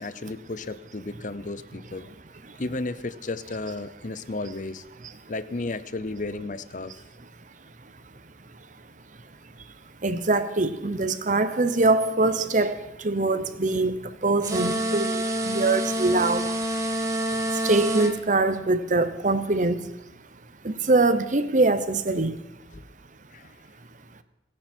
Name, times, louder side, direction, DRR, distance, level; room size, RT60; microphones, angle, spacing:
voice 1, 0.0-2.1 2.6-4.8 5.3-6.9 13.7-13.8 17.3-17.4 22.7-22.8 23.3-23.5, left 2 dB, 45° left, 0.7 m, -33 dB
voice 2, 10.0-16.6 17.5-20.0 20.6-22.4, right 2 dB, 45° right, 0.9 m, -23 dB
sound 1, 14.4-18.1, right 1 dB, 15° right, 1.6 m, -27 dB
29.5 x 9.9 x 4.5 m
head